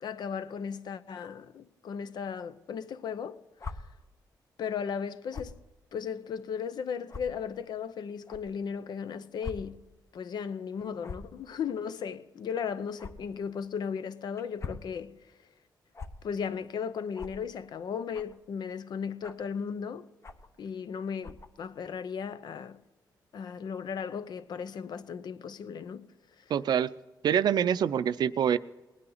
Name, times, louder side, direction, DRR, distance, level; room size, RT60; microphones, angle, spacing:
voice 1, 0.0-3.4 4.6-5.6 5.9-9.8 10.1-15.2 16.2-20.1 20.6-22.8 23.3-26.1 26.4-26.5, left 7 dB, 65° left, 0.7 m, -36 dB
sound 1, 3.6-3.7 5.3-5.6 6.3-6.4 7.1-7.2 8.3-8.4 9.4-9.6 9.9-10.0 11.0-11.3 13.0-13.1 14.4-14.8 15.9-16.1 17.1-17.3 18.1-18.4 19.2-19.5 20.2-20.5 21.2-21.5, left 4 dB, 40° left, 1.0 m, -40 dB
voice 2, 26.5-26.9 27.2-28.6, right 9 dB, 65° right, 0.5 m, -25 dB
19.0 x 9.7 x 3.9 m
cardioid pair, 105°, 8 cm